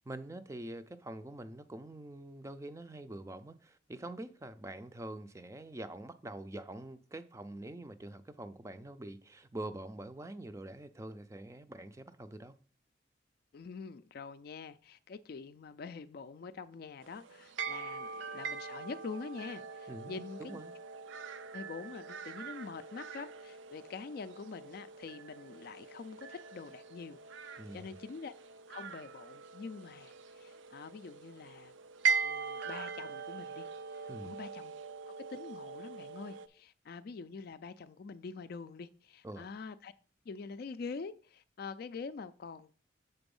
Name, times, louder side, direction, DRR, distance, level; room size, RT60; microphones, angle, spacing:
voice 1, 0.0-12.5 19.9-20.7 27.6-27.9 34.1-34.3 39.2-39.5, right 1 dB, 15° right, 0.4 m, -45 dB
voice 2, 13.5-20.6 21.5-28.3 28.7-31.7 32.2-34.7 35.1-39.9 40.3-42.7, left 4 dB, 50° left, 0.3 m, -45 dB
sound 1, 17.0-36.5, right 5 dB, 75° right, 0.4 m, -41 dB
6.9 x 4.0 x 5.3 m
head